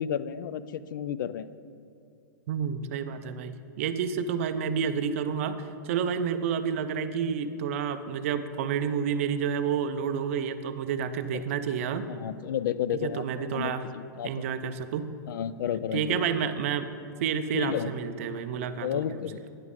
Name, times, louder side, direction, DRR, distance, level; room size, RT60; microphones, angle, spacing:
voice 1, 0.0-1.5 11.3-11.4 12.1-14.5 15.3-16.2 17.5-17.9 18.8-19.4, left 9 dB, 70° left, 16 dB, 0.4 m, -32 dB
voice 2, 2.5-12.0 13.0-13.9 14.2-15.1 15.9-16.9 17.2-19.1, right 7 dB, 40° right, 9 dB, 0.4 m, -29 dB
9.2 x 8.1 x 3.7 m, 2.5 s
supercardioid pair, 175°, 11 cm